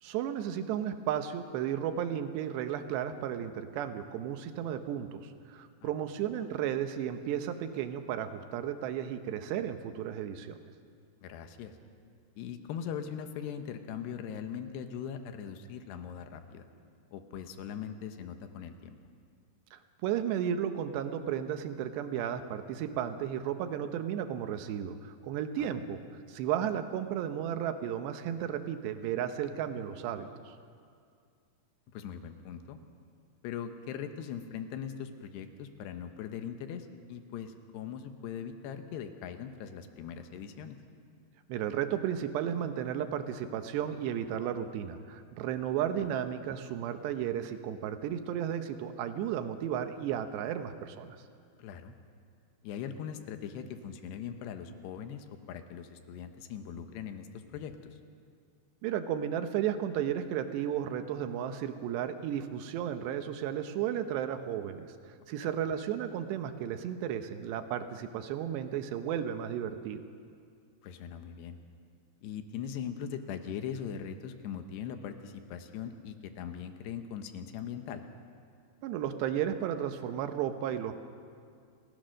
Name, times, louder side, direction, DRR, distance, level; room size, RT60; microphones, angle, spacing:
voice 1, 0.0-10.6 19.7-26.0 26.3-30.5 41.5-51.2 58.8-64.9 65.3-70.0 78.8-80.9, right 9 dB, 75° right, 8 dB, 2.8 m, -34 dB
voice 2, 11.2-11.8 12.4-16.6 17.1-19.0 25.6-25.7 31.9-32.8 33.4-40.8 46.0-46.1 51.6-51.9 52.6-58.0 65.4-65.5 70.8-71.6 72.2-78.0, left 8 dB, 75° left, 7 dB, 2.8 m, -40 dB
27.5 x 17.0 x 6.4 m, 2.2 s
omnidirectional pair, 5.6 m